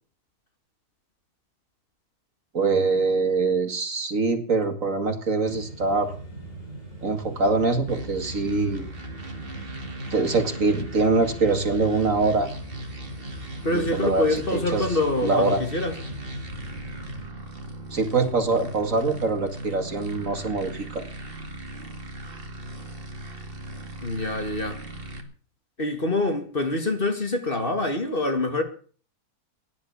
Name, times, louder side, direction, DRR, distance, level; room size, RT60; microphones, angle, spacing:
voice 1, 2.5-6.1 7.0-8.9 10.1-12.5 13.7-14.2 14.5-15.0 15.2-15.6 17.9-21.0, right 3 dB, 55° right, 2.6 m, -24 dB
sound 1, 5.5-17.3, right 2 dB, 55° left, 7.1 m, -40 dB
sound 2, 7.9-25.2, right 1 dB, 35° right, 2.4 m, -38 dB
voice 2, 13.6-16.0 24.0-24.8 25.8-28.6, left 2 dB, 35° left, 2.3 m, -25 dB
16.5 x 10.5 x 7.1 m
omnidirectional pair, 1.6 m